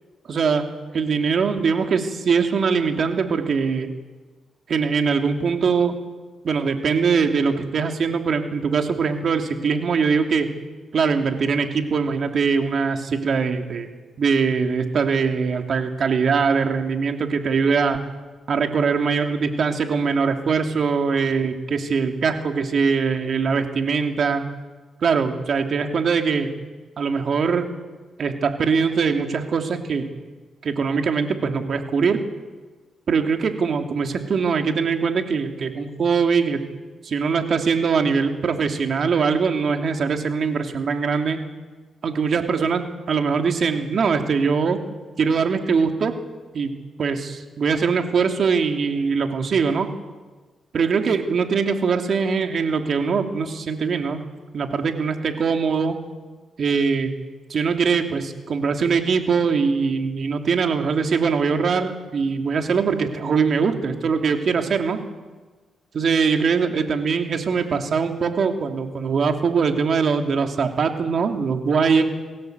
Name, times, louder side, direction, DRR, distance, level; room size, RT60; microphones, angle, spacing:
voice 1, 0.3-0.7 0.9-3.9 4.7-5.9 6.4-10.5 10.9-13.9 14.2-18.0 18.5-24.4 25.0-26.5 27.0-27.7 28.2-30.1 30.6-32.2 33.1-36.6 37.0-41.4 42.0-44.8 45.2-46.2 46.5-46.7 47.0-49.9 50.7-54.2 54.5-56.0 56.6-57.1 57.5-65.0 65.9-72.0, right 5 dB, 60° right, 4 dB, 2.9 m, -22 dB
27.0 x 17.0 x 8.1 m, 1.3 s
cardioid pair, 70°, 0 cm